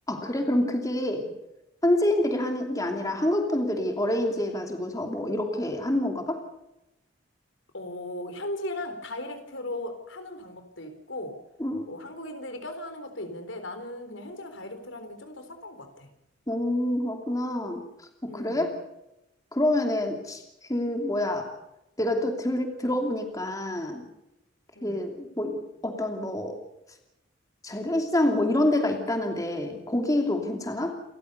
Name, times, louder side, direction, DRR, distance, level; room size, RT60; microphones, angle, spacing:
voice 1, 0.1-1.3 1.8-6.4 11.6-11.9 16.5-17.8 18.2-18.8 19.5-20.4 20.7-21.5 22.0-24.0 24.8-26.6 27.6-31.0, left 1 dB, 15° left, 4 dB, 2.8 m, -27 dB
voice 2, 7.7-11.4 11.9-16.1 18.3-18.7 24.8-25.0, left 1 dB, 75° left, 7 dB, 4.0 m, -37 dB
29.0 x 14.5 x 6.8 m, 0.88 s
head